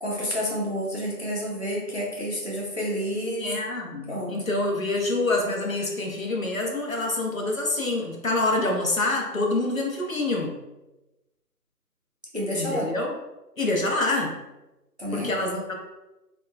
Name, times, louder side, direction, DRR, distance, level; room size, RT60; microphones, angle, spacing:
voice 1, 0.0-3.6 4.1-4.4 12.3-12.9 15.0-15.4, equal, 45° right, -4 dB, 0.5 m, -29 dB
voice 2, 3.4-10.6 12.5-13.2 13.6-14.4 15.1-15.7, left 2 dB, 55° left, 0 dB, 0.6 m, -26 dB
2.8 x 2.2 x 2.2 m, 0.99 s
figure-of-eight pair, 165°, 50 cm